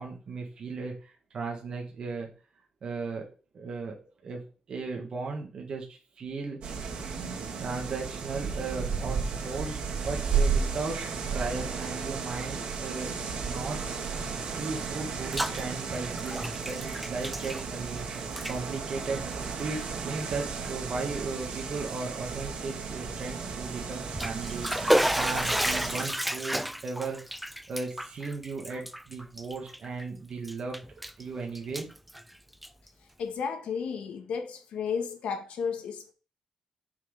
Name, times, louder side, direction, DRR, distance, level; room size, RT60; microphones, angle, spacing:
voice 1, 0.0-2.3 2.8-3.3 3.5-3.9 4.2-6.8 7.6-11.0 11.3-13.1 13.4-13.8 14.2-18.2 18.5-19.2 19.6-24.7 25.1-27.2 27.7-30.8 31.2-31.9, right 4 dB, 40° right, 1.5 m, -36 dB
sound 1, 6.6-26.1, right 5 dB, 60° right, 2.2 m, -34 dB
Bathtub (filling or washing), 15.0-15.6 15.9-18.0 18.3-18.6 19.3-19.5 20.1-20.2 20.6-20.7 23.9-30.0 30.4-31.2 31.5-32.9, equal, ahead, 0.3 m, -31 dB
voice 2, 33.2-36.1, left 6 dB, 70° left, 1.8 m, -33 dB
6.0 x 5.5 x 6.5 m
wide cardioid pair, 175°, 2 cm